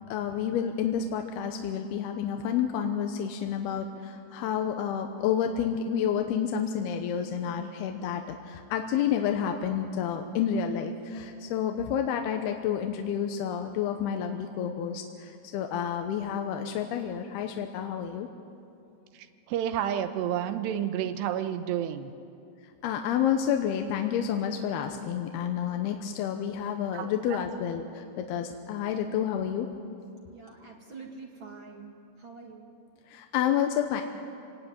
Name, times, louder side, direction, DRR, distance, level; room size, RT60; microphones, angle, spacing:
voice 1, 0.1-18.3 22.8-29.7 33.1-34.0, left 8 dB, 80° left, 5 dB, 2.9 m, -29 dB
voice 2, 19.5-22.1 26.9-27.4, right 10 dB, 85° right, 10 dB, 3.2 m, -30 dB
voice 3, 30.3-32.7, right 4 dB, 45° right, 1 dB, 1.8 m, -46 dB
26.0 x 18.0 x 9.6 m, 2.6 s
omnidirectional pair, 4.8 m